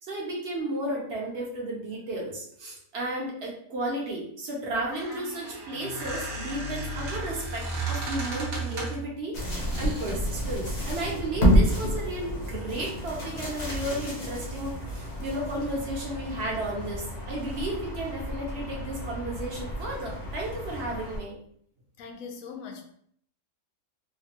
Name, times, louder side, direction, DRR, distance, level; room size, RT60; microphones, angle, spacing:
voice 1, 0.0-9.4 9.8-21.3, right 1 dB, 55° right, -2 dB, 0.9 m, -33 dB
Squeak, 4.7-9.1 9.7-10.2, right 2 dB, 75° right, 1.4 m, -34 dB
sound 1, 9.3-21.2, equal, 50° left, 0.5 m, -30 dB
voice 2, 22.0-22.8, left 5 dB, 75° left, 4 dB, 1.0 m, -40 dB
3.0 x 2.2 x 2.8 m, 0.66 s
omnidirectional pair, 1.5 m